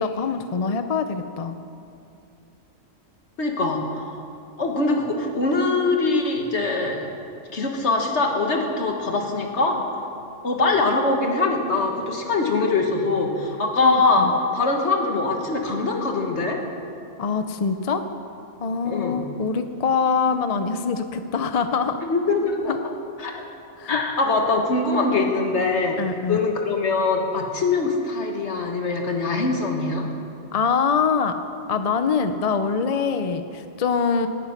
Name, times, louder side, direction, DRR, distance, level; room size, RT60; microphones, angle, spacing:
voice 1, 0.0-1.6 13.8-14.3 17.2-18.0 18.6-22.0 22.7-22.8 23.8-24.0 26.0-26.4 30.5-31.3 31.7-34.3, left 5 dB, 40° left, 8 dB, 0.5 m, -24 dB
voice 2, 3.4-4.2 4.6-7.1 7.5-9.8 10.4-16.6 18.8-19.2 22.0-22.8 23.2-23.4 23.9-26.0 26.3-30.1, left 3 dB, 60° left, 2 dB, 1.9 m, -23 dB
18.0 x 10.0 x 5.9 m, 2.6 s
omnidirectional pair, 1.3 m